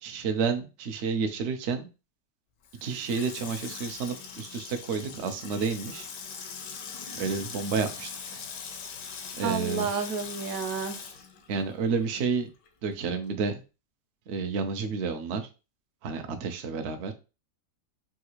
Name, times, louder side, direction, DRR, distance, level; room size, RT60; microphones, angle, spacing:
voice 1, 0.0-1.9 2.8-6.1 7.2-8.1 9.4-10.1 11.5-12.5 12.8-13.6 14.3-15.5 16.0-17.1, right 5 dB, 85° right, 6 dB, 0.6 m, -30 dB
Water tap faucet / Sink (filling or washing), 2.6-12.4 12.7-12.8, left 6 dB, 90° left, 1.3 m, -41 dB
voice 2, 9.4-11.0, right 5 dB, 70° right, 7 dB, 0.9 m, -30 dB
3.5 x 2.4 x 2.9 m, 0.31 s
omnidirectional pair, 1.8 m